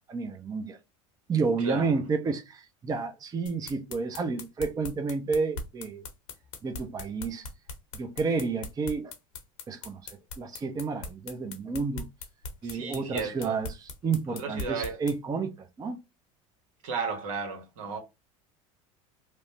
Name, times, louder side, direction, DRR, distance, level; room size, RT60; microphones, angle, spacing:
voice 1, 0.1-0.8 1.3-6.0 6.6-7.5 8.0-9.1 9.7-10.0 10.4-12.1 12.6-15.5 15.8-16.0, right 4 dB, 20° right, 0.5 m, -30 dB
voice 2, 1.6-1.9 12.6-13.6 14.3-15.0 16.8-18.0, right 4 dB, 75° right, 1.0 m, -34 dB
sound 1, 3.5-15.2, left 3 dB, 70° left, 0.8 m, -40 dB
3.0 x 2.0 x 2.6 m
hypercardioid pair, 85°, 17 cm